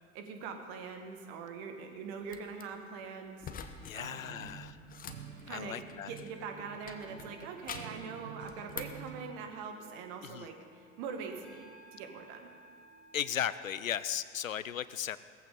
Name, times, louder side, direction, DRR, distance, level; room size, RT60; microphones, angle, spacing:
voice 1, 0.1-3.5 3.9-4.4 5.4-10.6 11.0-12.5, right 5 dB, 45° right, 5 dB, 2.0 m, -43 dB
sound 1, 2.3-2.6 3.4-4.0 4.3-6.4 6.9-8.0 8.5-9.1, left 7 dB, 20° left, 1.0 m, -46 dB
voice 2, 3.9-4.8 5.5-6.1 10.2-10.5 13.1-15.2, left 9 dB, 75° left, 16 dB, 0.6 m, -36 dB
sound 2, 4.0-9.3, right 7 dB, 80° right, 1.2 m, -50 dB
sound 3, 6.0-13.9, equal, 30° right, 3.3 m, -59 dB
18.5 x 14.5 x 4.0 m, 2.3 s
figure-of-eight pair, 80°, 40 cm